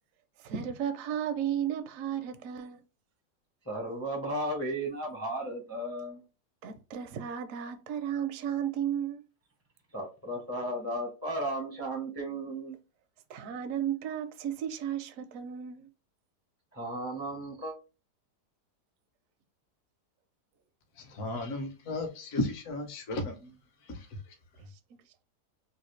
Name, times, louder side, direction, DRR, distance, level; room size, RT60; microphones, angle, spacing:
voice 1, 0.4-2.8 6.6-9.2 13.3-15.9, right 9 dB, 70° right, 0.8 m, -34 dB
voice 2, 3.7-6.2 9.9-12.8 16.7-17.7, right 1 dB, 20° left, 0.4 m, -35 dB
voice 3, 21.1-23.5 23.9-24.0, left 2 dB, 60° left, 1.1 m, -34 dB
3.2 x 2.4 x 3.0 m
omnidirectional pair, 1.8 m